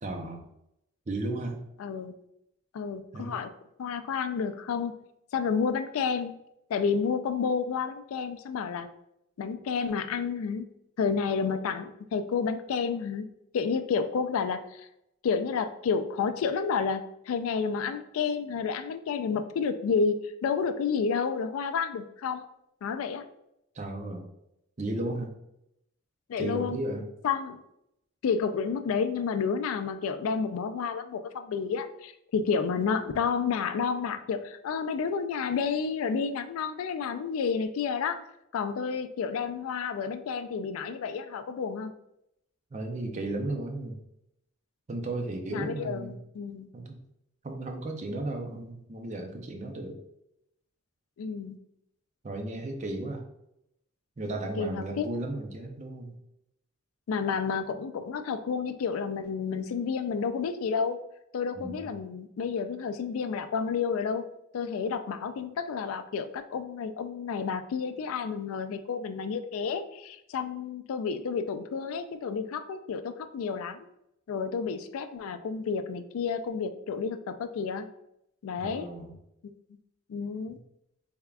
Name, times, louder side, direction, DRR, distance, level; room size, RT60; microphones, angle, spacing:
voice 1, 0.0-0.4 1.1-1.6 3.1-3.4 23.8-24.3 24.8-25.3 26.4-27.1 42.7-44.0 44.9-46.2 46.7-47.0 47.4-50.0 52.2-53.2 54.2-56.2 61.6-61.9 78.6-79.1 80.5-80.6, right 2 dB, 35° right, 3 dB, 0.5 m, -34 dB
voice 2, 1.8-2.1 2.7-3.5 3.8-4.9 5.3-6.3 6.7-8.9 9.4-10.7 11.0-13.3 13.5-14.9 15.2-22.5 22.8-23.2 26.3-26.8 27.2-27.6 28.2-38.2 38.5-41.9 45.5-46.7 51.2-51.6 54.6-55.1 57.1-61.0 61.3-64.3 64.5-73.9 74.3-77.9 78.4-78.9 79.4-79.5 80.1-80.6, left 5 dB, 70° left, 9 dB, 0.3 m, -30 dB
3.5 x 3.4 x 2.3 m, 0.79 s
head